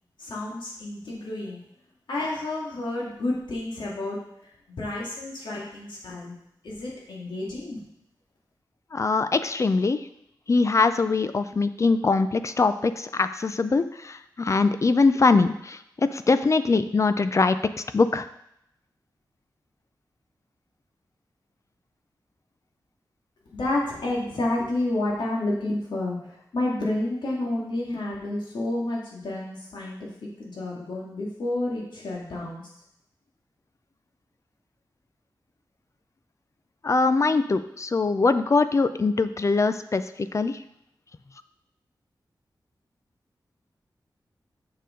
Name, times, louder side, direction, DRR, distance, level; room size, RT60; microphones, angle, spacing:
voice 1, 0.2-1.6 2.1-6.4 6.6-7.8 23.5-32.6, left 2 dB, 90° left, -3 dB, 2.1 m, -30 dB
voice 2, 8.9-10.0 10.5-15.8 16.1-17.6 17.9-18.3 36.8-40.6, left 3 dB, 40° left, 11 dB, 0.4 m, -22 dB
6.7 x 6.7 x 3.8 m, 0.76 s
wide cardioid pair, 90°, 8 cm